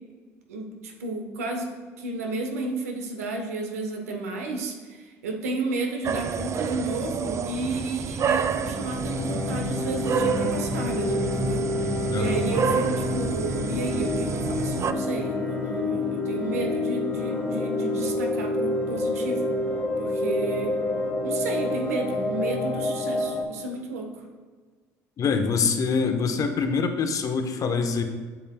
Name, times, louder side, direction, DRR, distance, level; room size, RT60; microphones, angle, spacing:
voice 1, 0.5-1.7 2.0-19.5 20.0-20.7 21.2-24.2, right 2 dB, 90° right, 3 dB, 0.9 m, -32 dB
sound 1, 6.0-14.9, right 6 dB, 40° right, 0.4 m, -29 dB
sound 2, 8.4-23.4, left 2 dB, 15° left, 1.4 m, -28 dB
voice 2, 12.1-12.4 25.2-28.0, left 5 dB, 45° left, 6 dB, 0.9 m, -25 dB
8.4 x 7.0 x 2.2 m, 1.5 s
hypercardioid pair, 65°, 8 cm